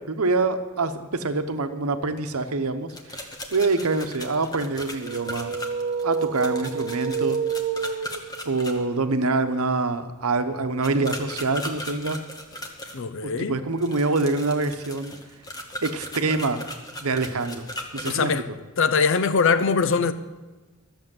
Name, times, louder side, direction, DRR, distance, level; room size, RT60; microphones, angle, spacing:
voice 1, 0.1-5.5 6.0-7.4 8.4-12.2 13.2-15.1 15.8-16.7 17.0-17.6 17.9-18.4, right 3 dB, 75° right, 0.9 m, -25 dB
sound 1, 2.9-8.7 10.8-13.0 13.8-18.1, left 1 dB, 15° left, 1.1 m, -37 dB
sound 2, 5.0-8.6, right 6 dB, 50° right, 0.5 m, -28 dB
voice 2, 12.9-13.5 18.1-18.4 18.8-20.1, left 5 dB, 60° left, 0.6 m, -22 dB
13.5 x 7.1 x 7.7 m
head